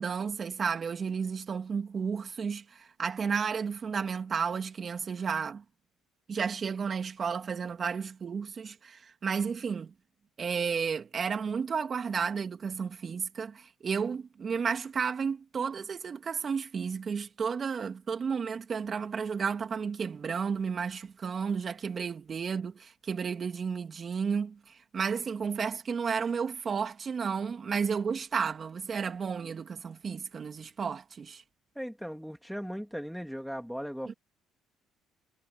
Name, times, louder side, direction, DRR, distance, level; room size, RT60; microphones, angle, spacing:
voice 1, 0.0-5.6 6.3-9.9 10.4-31.4 34.1-34.2, right 6 dB, 40° right, 3.0 m, -32 dB
voice 2, 31.7-34.1, equal, ahead, 2.7 m, -38 dB
cardioid pair, 100°, 0 cm